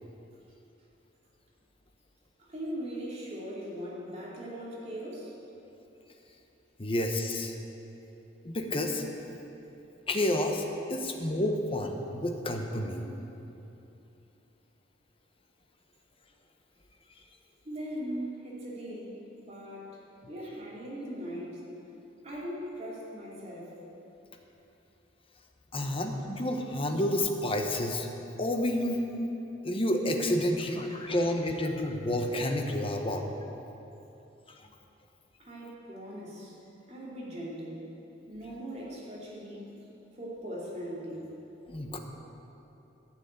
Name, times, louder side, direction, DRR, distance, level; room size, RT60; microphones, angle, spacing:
voice 1, 2.4-5.3 17.6-20.0 20.3-21.6 22.2-23.7 35.4-36.5 36.9-37.9 38.3-39.8 40.1-41.2, equal, 35° right, -5 dB, 2.7 m, -39 dB
voice 2, 6.8-7.5 8.4-9.0 10.1-10.6 10.9-13.1 25.7-28.1 28.4-29.1 29.6-33.2 41.7-42.0, left 1 dB, 30° left, 3 dB, 1.0 m, -29 dB
11.5 x 6.3 x 8.8 m, 3.0 s
head